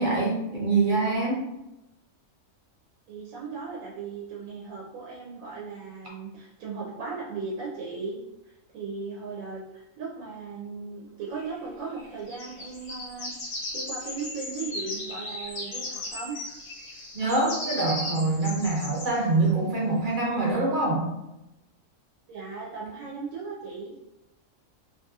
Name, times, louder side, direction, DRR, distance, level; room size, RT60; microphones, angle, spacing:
voice 1, 0.0-1.4 17.1-21.1, right 3 dB, 45° right, -4 dB, 0.8 m, -25 dB
voice 2, 3.1-16.4 22.3-23.9, right 4 dB, 80° right, -3 dB, 1.0 m, -37 dB
sound 1, 11.4-11.5 12.0-19.2 20.2-20.4, left 1 dB, 75° left, 1.3 m, -36 dB
2.8 x 2.8 x 2.3 m, 0.93 s
omnidirectional pair, 1.4 m